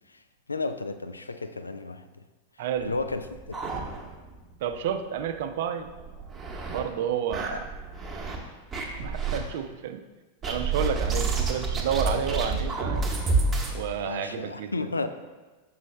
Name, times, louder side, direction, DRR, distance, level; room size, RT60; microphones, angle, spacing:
voice 1, 0.5-2.1 2.8-3.7 7.5-7.6 13.9-15.1, left 3 dB, 80° left, 9 dB, 0.3 m, -33 dB
voice 2, 2.6-2.9 4.6-5.9 6.7-7.7 9.0-10.0 10.4-13.1 13.7-14.8, right 8 dB, 55° right, 9 dB, 0.4 m, -30 dB
sound 1, 2.8-4.4 4.7-4.8 5.2-5.3 5.9-6.8 7.3-8.4 8.7-9.4 10.4-13.7, right 3 dB, 20° right, 0.9 m, -29 dB
6.2 x 5.4 x 3.1 m, 1.2 s
figure-of-eight pair, 90°, 0 cm